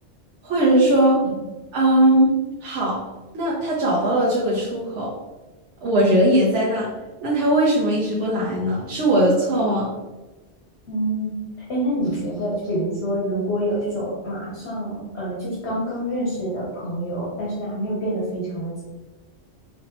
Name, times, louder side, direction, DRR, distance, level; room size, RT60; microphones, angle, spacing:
voice 1, 0.4-1.2 1.7-3.0 3.3-5.1 5.8-6.9 7.2-9.9, right 1 dB, 90° right, -6 dB, 1.1 m, -19 dB
voice 2, 10.9-11.3 11.7-18.8, right 1 dB, 65° left, -6 dB, 1.2 m, -26 dB
4.2 x 2.7 x 2.9 m, 1.1 s
omnidirectional pair, 1.2 m